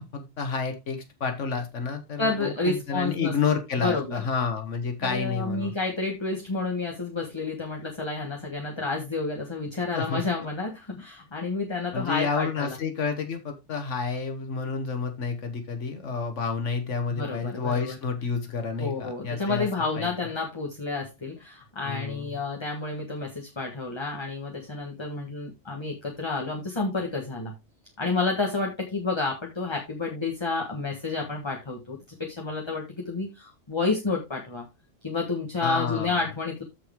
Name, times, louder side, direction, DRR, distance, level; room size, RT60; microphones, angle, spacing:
voice 1, 0.0-5.7 9.9-10.2 11.9-19.7 19.9-20.1 21.8-22.2 35.6-36.2, left 5 dB, 85° left, 6 dB, 1.6 m, -30 dB
voice 2, 2.2-3.3 3.8-4.2 5.0-12.8 17.1-18.0 18.8-27.5 28.0-34.7 35.0-36.6, left 3 dB, 25° left, 0 dB, 1.5 m, -30 dB
14.0 x 4.7 x 3.5 m, 0.24 s
omnidirectional pair, 1.2 m